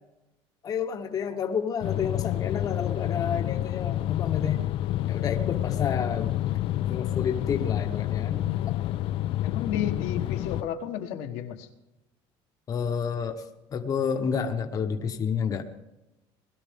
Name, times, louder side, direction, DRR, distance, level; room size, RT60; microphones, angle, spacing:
voice 1, 0.6-4.6 5.1-8.5 12.7-13.4 13.7-15.6, left 6 dB, 30° left, 5 dB, 1.0 m, -30 dB
sound 1, 1.8-10.6, left 14 dB, 50° left, 0.4 m, -28 dB
voice 2, 9.4-11.7, left 9 dB, 80° left, 5 dB, 1.3 m, -32 dB
20.0 x 12.5 x 3.6 m, 0.93 s
cardioid pair, 150°, 12 cm